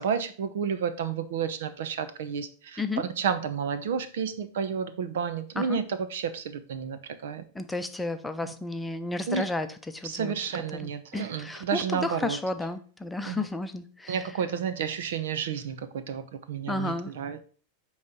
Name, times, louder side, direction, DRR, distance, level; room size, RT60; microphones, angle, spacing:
voice 1, 0.0-7.4 8.4-8.5 9.3-9.4 10.0-12.4 13.2-13.5 14.1-17.4, right 7 dB, 80° right, 11 dB, 0.8 m, -31 dB
voice 2, 7.5-10.3 10.8-14.3 16.7-17.1, left 2 dB, 5° left, 8 dB, 0.7 m, -32 dB
8.6 x 3.2 x 5.3 m, 0.42 s
hypercardioid pair, 120°, 0 cm